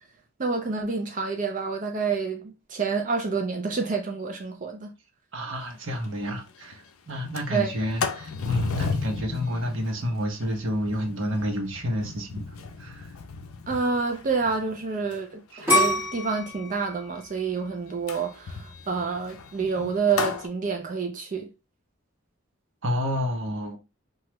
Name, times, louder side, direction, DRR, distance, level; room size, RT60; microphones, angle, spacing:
voice 1, 0.4-4.9 7.5-7.7 13.7-21.5, right 4 dB, 35° right, 0.4 m, -28 dB
voice 2, 5.3-12.4 12.8-13.1 15.5-15.6 22.8-23.8, equal, 60° right, 0.8 m, -30 dB
Sliding door, 5.6-5.7 6.0-6.1 6.5-6.8 7.2-15.2 15.6-16.1 18.1-20.5, left 5 dB, 80° left, 0.5 m, -34 dB
sound 1, 15.7-18.6 19.1-19.6, equal, 10° right, 1.4 m, -26 dB
2.9 x 2.3 x 3.0 m
head